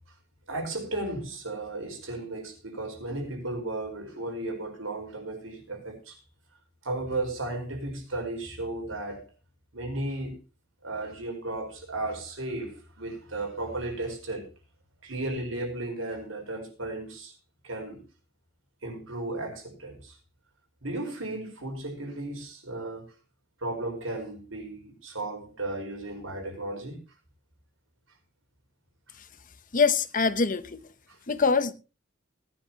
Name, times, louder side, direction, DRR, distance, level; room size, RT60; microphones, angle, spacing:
voice 1, 0.5-6.2 6.8-9.3 9.7-10.4 10.8-14.5 15.0-17.3 17.6-18.0 18.8-20.2 20.8-23.1 23.6-27.0 31.1-31.2, right 2 dB, 90° right, 5.0 m, -35 dB
voice 2, 29.7-30.8 31.3-31.7, left 5 dB, 45° left, 0.9 m, -24 dB
19.0 x 10.5 x 3.0 m
head